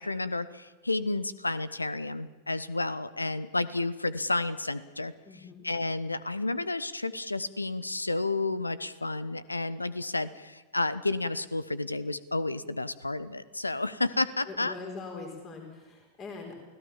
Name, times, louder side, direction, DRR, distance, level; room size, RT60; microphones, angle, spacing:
voice 1, 0.0-5.1 5.6-14.7, left 2 dB, 80° left, 17 dB, 0.9 m, -31 dB
voice 2, 5.2-5.7 14.5-16.5, left 4 dB, 30° left, 1 dB, 4.6 m, -42 dB
29.0 x 17.0 x 7.4 m, 1.2 s
figure-of-eight pair, 90°, 0 cm